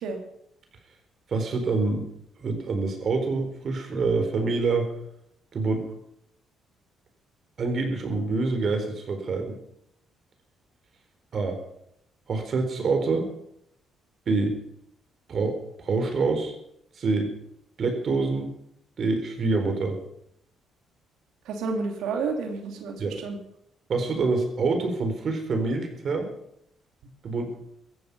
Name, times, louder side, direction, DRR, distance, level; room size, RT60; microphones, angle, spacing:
voice 1, 1.3-2.1 2.4-4.9 5.5-5.9 7.6-9.6 11.3-11.6 12.3-13.3 14.3-14.6 15.3-16.5 17.0-17.3 17.8-18.5 19.0-20.0 23.0-23.2 23.9-26.3 27.2-27.6, right 3 dB, 50° right, 5 dB, 4.1 m, -26 dB
voice 2, 21.5-23.4, right 4 dB, 80° right, 4 dB, 2.7 m, -30 dB
17.0 x 14.0 x 5.5 m, 0.75 s
cardioid pair, 100°, 0 cm